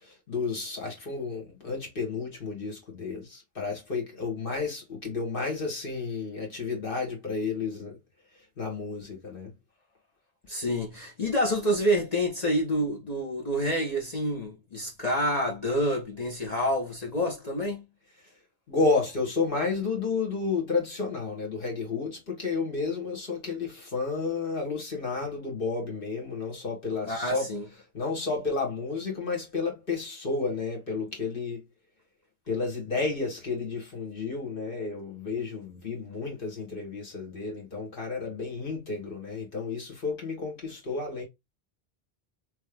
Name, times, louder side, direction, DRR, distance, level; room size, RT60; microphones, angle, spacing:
voice 1, 0.0-8.0 8.6-9.5 18.7-27.5 27.9-31.6 32.5-41.2, left 4 dB, 55° left, 1.7 m, -31 dB
voice 2, 10.5-17.9 27.0-27.6, equal, 40° left, 1.0 m, -28 dB
3.3 x 3.0 x 3.2 m
omnidirectional pair, 1.1 m